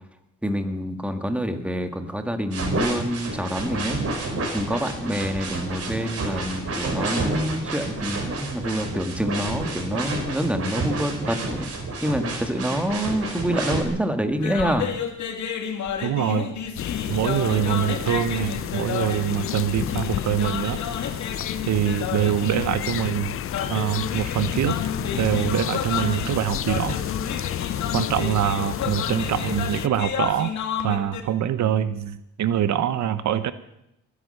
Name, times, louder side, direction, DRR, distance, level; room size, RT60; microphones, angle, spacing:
voice 1, 0.4-4.0 4.5-11.7 12.0-14.9, equal, 5° right, 7 dB, 1.9 m, -27 dB
sound 1, 2.5-13.8, right 2 dB, 50° right, 3.9 m, -29 dB
sound 2, 14.3-31.2, left 7 dB, 70° left, 2.3 m, -31 dB
voice 2, 16.0-16.5 17.1-20.8 21.2-21.4 21.7-23.4 23.7-24.8 25.2-27.0 27.9-30.5 30.8-33.5, right 10 dB, 65° right, 13 dB, 0.9 m, -24 dB
sound 3, 16.8-29.9, left 11 dB, 45° left, 0.5 m, -31 dB
21.0 x 10.0 x 6.6 m, 0.82 s
cardioid pair, 90°, 30 cm